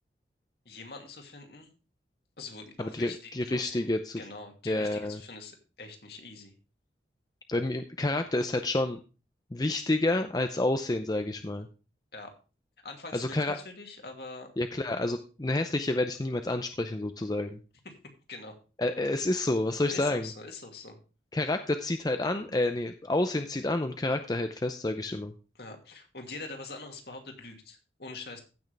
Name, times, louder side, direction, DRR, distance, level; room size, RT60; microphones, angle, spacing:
voice 1, 0.6-1.7 2.4-3.9 4.2-6.5 12.1-12.4 12.8-14.5 17.8-18.0 18.3-18.5 19.9-21.0 25.5-28.4, left 3 dB, 60° left, 3 dB, 2.4 m, -44 dB
voice 2, 2.8-4.2 4.7-5.2 7.5-9.0 9.5-11.7 13.1-13.6 14.6-17.6 18.8-20.3 21.3-25.3, left 2 dB, 20° left, 7 dB, 0.5 m, -29 dB
15.5 x 6.2 x 3.4 m, 0.33 s
head